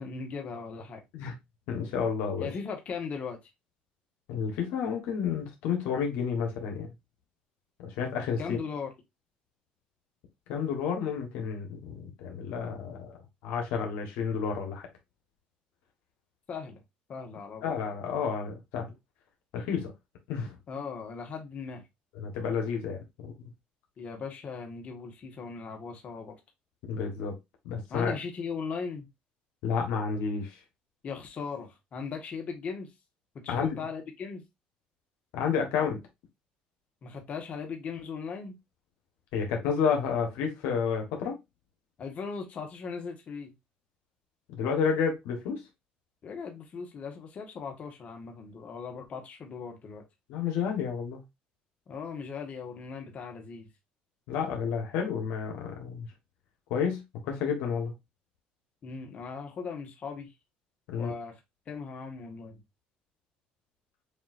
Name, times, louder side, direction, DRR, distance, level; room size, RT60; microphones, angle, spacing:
voice 1, 0.0-1.0 2.4-3.4 8.4-8.9 16.5-16.8 17.1-17.8 20.7-21.8 24.0-26.3 27.9-29.1 31.0-32.9 33.3-34.4 37.0-38.6 42.0-43.5 46.2-50.0 51.9-53.7 58.8-60.3 60.9-61.4 61.7-62.6, left 5 dB, 45° left, 1.4 m, -38 dB
voice 2, 1.7-2.5 4.3-6.9 7.8-8.6 10.5-13.2 13.4-14.9 17.6-18.9 19.5-19.9 20.3-20.5 22.1-23.5 26.9-27.3 27.6-28.1 29.6-30.5 33.5-33.8 35.3-36.0 39.3-41.3 44.6-45.6 50.3-51.2 54.3-56.1 56.7-57.9 60.9-61.1, left 6 dB, 85° left, 1.4 m, -30 dB
7.0 x 2.8 x 2.6 m
cardioid pair, 110°, 3 cm